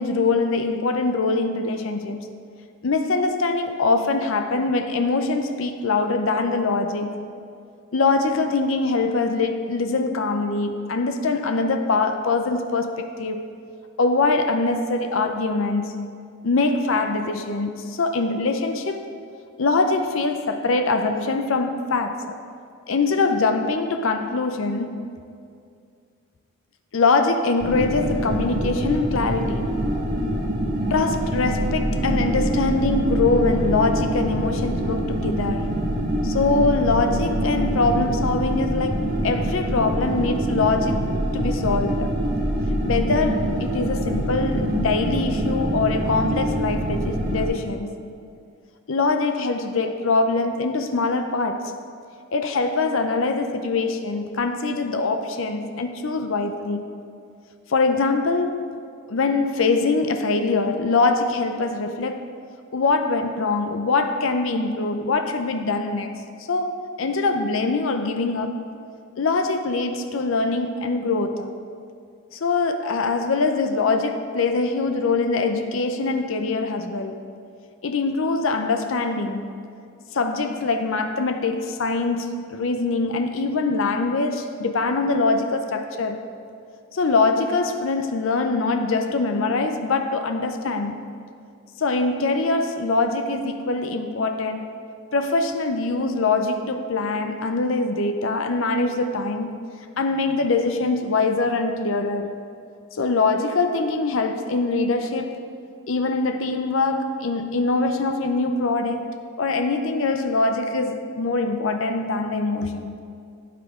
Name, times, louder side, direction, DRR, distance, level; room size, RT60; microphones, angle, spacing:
voice 1, 0.0-2.3 2.8-7.3 7.9-13.6 14.0-16.1 16.4-19.1 19.6-22.4 22.9-25.0 26.9-29.8 30.9-35.8 36.2-41.1 41.3-42.1 42.8-48.1 48.9-51.7 52.3-57.0 57.7-58.7 59.1-62.2 62.7-66.2 66.5-68.6 69.2-71.5 72.3-77.2 77.8-79.5 80.1-86.3 86.9-91.1 91.8-94.7 95.1-99.6 100.0-102.4 102.9-105.4 105.9-109.1 109.4-112.9, left 3 dB, 65° left, 0.6 m, -23 dB
sound 1, 27.6-47.5, right 1 dB, 40° right, 1.6 m, -25 dB
12.5 x 8.2 x 3.6 m
head